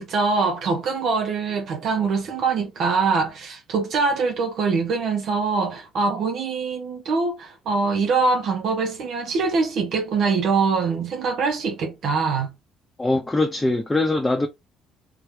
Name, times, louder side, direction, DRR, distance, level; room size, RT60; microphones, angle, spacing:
voice 1, 0.0-12.5, right 4 dB, 55° right, 0.8 m, -23 dB
voice 2, 13.0-14.5, left 2 dB, 15° left, 0.7 m, -22 dB
3.8 x 3.1 x 2.8 m
figure-of-eight pair, 50°, 0 cm